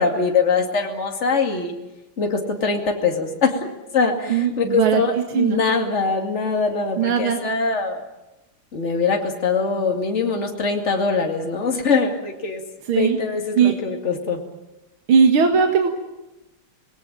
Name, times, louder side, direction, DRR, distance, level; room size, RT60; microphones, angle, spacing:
voice 1, 0.0-1.7 2.2-3.7 3.9-8.0 8.7-12.6 13.0-14.4, left 4 dB, 35° left, 3 dB, 2.7 m, -22 dB
voice 2, 4.3-5.6 7.0-7.4 12.9-13.2 13.6-13.7 15.1-15.9, right 6 dB, 75° right, 4 dB, 2.6 m, -18 dB
26.5 x 20.0 x 9.0 m, 0.99 s
omnidirectional pair, 2.4 m